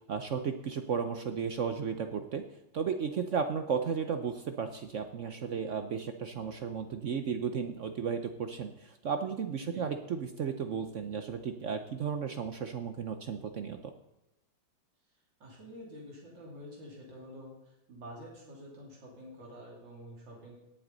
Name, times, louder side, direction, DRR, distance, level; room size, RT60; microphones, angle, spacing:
voice 1, 0.1-2.4 2.7-13.8, right 6 dB, 60° right, 7 dB, 0.8 m, -34 dB
voice 2, 9.6-9.9 15.4-20.6, equal, 80° right, -3 dB, 3.6 m, -48 dB
18.0 x 7.8 x 4.0 m, 0.92 s
omnidirectional pair, 2.0 m